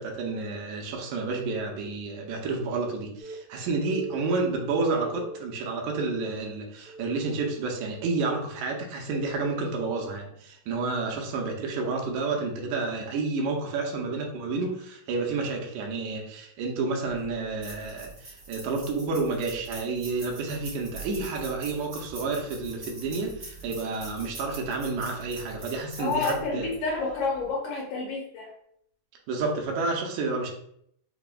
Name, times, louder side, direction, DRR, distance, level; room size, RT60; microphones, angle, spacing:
voice 1, 0.0-26.7 29.3-30.5, right 3 dB, 80° right, 1 dB, 2.0 m, -30 dB
Telephone, 3.2-3.3 3.8-4.3 4.8-5.4 5.8-6.4 6.9-7.4 7.9-8.2 9.2-9.4, right 1 dB, 50° left, 0.6 m, -41 dB
sound 1, 17.1-27.5, right 3 dB, 65° right, 0.7 m, -44 dB
voice 2, 26.0-28.5, left 4 dB, 80° left, -2 dB, 2.0 m, -29 dB
4.9 x 2.0 x 2.2 m, 0.70 s
omnidirectional pair, 3.4 m